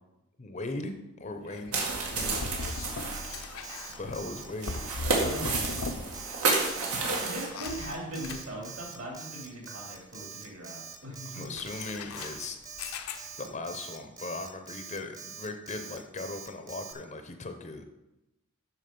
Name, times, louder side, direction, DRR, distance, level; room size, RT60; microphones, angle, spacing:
voice 1, 0.4-1.8 4.0-4.7 11.3-12.6 13.4-17.8, left 2 dB, 35° left, 7 dB, 0.6 m, -38 dB
sound 1, 1.5-6.3 6.6-8.9 11.5-13.6, left 4 dB, 85° left, 0.7 m, -39 dB
sound 2, 1.7-7.5, right 3 dB, 90° right, 2.1 m, -31 dB
voice 2, 2.1-2.5 5.1-5.9 7.1-11.5, right 1 dB, 65° right, -2 dB, 3.0 m, -40 dB
Alarm, 2.2-16.9, right 6 dB, 15° right, 0.7 m, -44 dB
7.6 x 6.3 x 5.3 m, 0.94 s
head